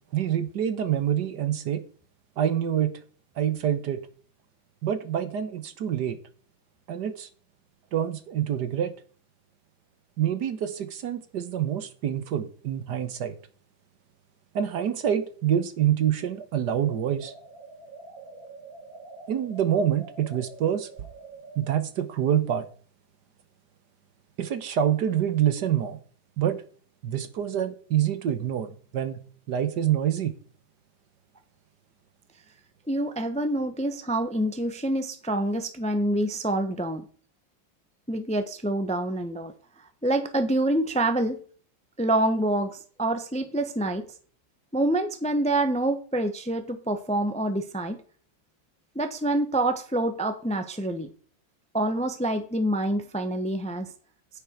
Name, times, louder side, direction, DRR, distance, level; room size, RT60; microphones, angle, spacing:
voice 1, 0.1-1.8 2.4-2.9 3.4-4.0 4.8-6.2 6.9-7.3 7.9-8.9 10.2-13.3 14.5-17.3 19.3-20.9 21.6-22.7 24.4-26.0 26.4-26.6 27.0-29.2 29.5-30.3, right 10 dB, 65° right, 12 dB, 1.5 m, -26 dB
sound 1, 16.8-21.7, right 3 dB, 85° right, 3.8 m, -46 dB
voice 2, 32.9-37.0 38.1-39.5 40.0-41.4 42.0-44.0 44.7-48.0 48.9-51.1 51.7-53.9, right 1 dB, 5° left, 7 dB, 0.7 m, -26 dB
9.9 x 9.5 x 4.5 m, 0.43 s
omnidirectional pair, 2.0 m